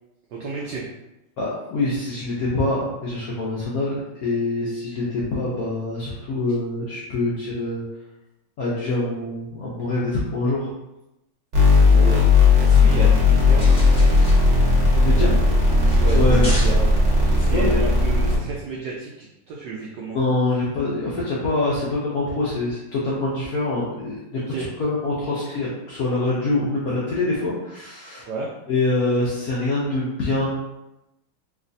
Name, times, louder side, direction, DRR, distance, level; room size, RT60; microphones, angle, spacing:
voice 1, 0.3-0.8 11.8-12.3 12.6-14.2 16.0-16.9 17.2-20.2 24.3-24.7 28.2-28.5, right 3 dB, 80° right, -3 dB, 0.9 m, -31 dB
voice 2, 1.4-7.8 8.6-10.7 14.9-15.3 16.1-16.5 17.5-17.8 20.1-24.5 24.8-28.3 28.7-30.5, left 2 dB, 85° left, -7 dB, 0.7 m, -25 dB
sound 1, 11.5-18.4, left 3 dB, 45° right, 0.9 m, -16 dB
sound 2, 13.6-17.4, left 1 dB, 30° left, 0.9 m, -36 dB
3.3 x 3.1 x 2.6 m, 0.95 s
omnidirectional pair, 2.3 m